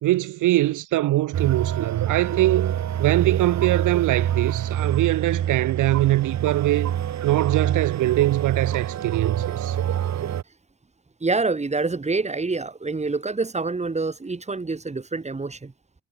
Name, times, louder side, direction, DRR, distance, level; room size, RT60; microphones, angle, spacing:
voice 1, 0.0-6.9 7.2-9.8, right 16 dB, 85° right, 1.4 m, -22 dB
sound 1, 1.3-10.4, right 10 dB, 65° right, 2.7 m, -26 dB
voice 2, 11.2-15.7, right 3 dB, 20° right, 4.2 m, -26 dB
cardioid pair, 90°, 30 cm